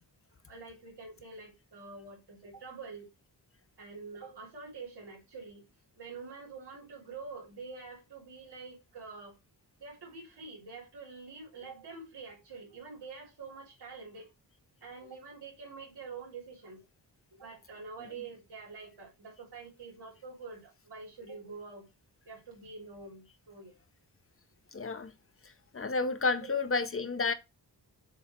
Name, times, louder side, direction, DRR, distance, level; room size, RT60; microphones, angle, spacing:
voice 1, 0.5-3.1 3.8-5.7 6.0-9.3 9.8-14.3 14.8-16.8 17.4-21.8 22.2-23.7 26.4-26.6, right 4 dB, 70° right, 3.4 m, -46 dB
voice 2, 24.7-25.1 25.7-27.3, left 4 dB, 30° left, 0.8 m, -30 dB
7.4 x 3.1 x 4.5 m
wide cardioid pair, 105°, 41 cm